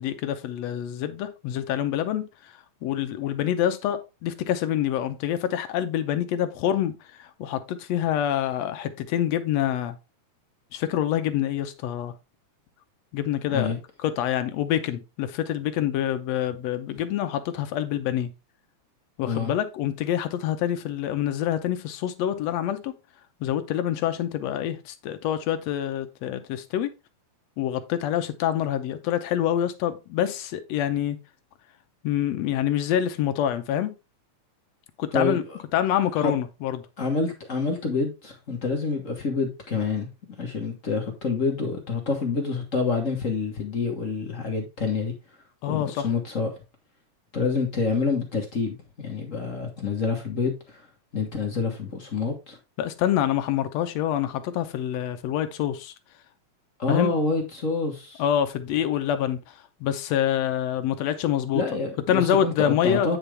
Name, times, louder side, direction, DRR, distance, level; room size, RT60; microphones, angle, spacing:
voice 1, 0.0-2.5 2.8-10.0 10.7-12.1 13.1-13.7 14.0-18.3 19.2-22.9 23.4-26.9 27.6-31.2 32.0-33.9 35.0-35.4 35.7-36.8 45.6-46.1 52.8-55.9 56.9-57.1 58.2-61.6 62.1-63.2, left 10 dB, 70° left, 1.7 m, -26 dB
voice 2, 35.1-35.6 36.2-36.3 37.0-45.1 45.7-46.5 47.3-50.9 51.1-52.6 56.8-58.2 61.5-63.2, left 4 dB, 55° left, 0.8 m, -27 dB
9.0 x 5.6 x 3.4 m
omnidirectional pair, 3.6 m